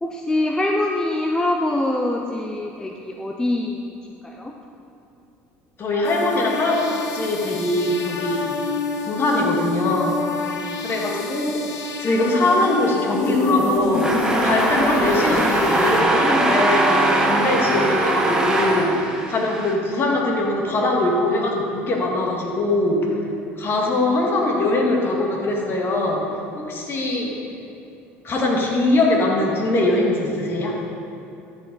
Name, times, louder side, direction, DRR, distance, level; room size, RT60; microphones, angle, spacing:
voice 1, 0.0-3.8 4.2-4.5, left 1 dB, 10° left, 1 dB, 0.6 m, -24 dB
voice 2, 5.8-8.4 9.0-10.2 10.8-11.6 12.0-23.1 23.6-26.2 26.6-27.3 28.2-30.8, left 2 dB, 40° left, -1 dB, 1.9 m, -22 dB
sound 1, 6.0-16.0, left 4 dB, 60° left, 1.0 m, -27 dB
sound 2, 14.0-19.7, right 2 dB, 10° right, 1.3 m, -21 dB
13.0 x 5.6 x 4.0 m, 2.8 s
hypercardioid pair, 75°, 6 cm